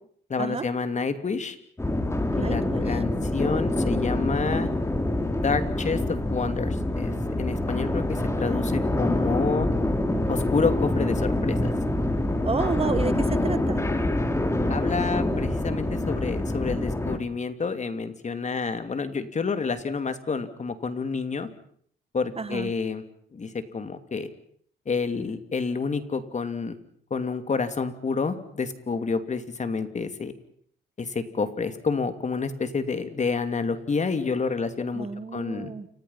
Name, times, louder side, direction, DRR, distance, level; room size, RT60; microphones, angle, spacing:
voice 1, 0.3-1.6 2.3-4.7 5.4-9.7 10.3-11.7 14.7-21.5 22.1-23.0 23.3-24.3 24.9-26.8 27.1-30.3 31.0-35.7, left 4 dB, 35° left, 10 dB, 2.8 m, -29 dB
sound 1, 1.8-17.2, left 1 dB, 15° left, 3.2 m, -26 dB
voice 2, 2.3-3.0 12.4-13.8 22.4-22.7 34.9-35.9, right 4 dB, 30° right, 13 dB, 1.6 m, -30 dB
29.0 x 26.0 x 5.8 m, 0.63 s
cardioid pair, 90°, 20 cm